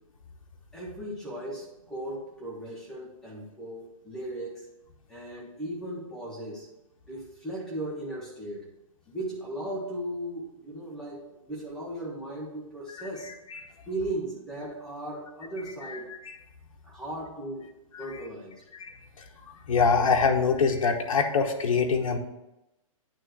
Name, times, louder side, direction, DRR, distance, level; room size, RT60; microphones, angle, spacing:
voice 1, 0.7-4.7 5.1-6.7 7.1-8.7 9.1-13.3 13.9-16.1 16.8-18.6, right 1 dB, 5° left, -6 dB, 1.0 m, -37 dB
voice 2, 15.9-16.2 18.7-18.9 19.7-22.2, left 5 dB, 75° left, 3 dB, 1.1 m, -24 dB
9.1 x 3.1 x 6.2 m, 0.94 s
hypercardioid pair, 175°, 18 cm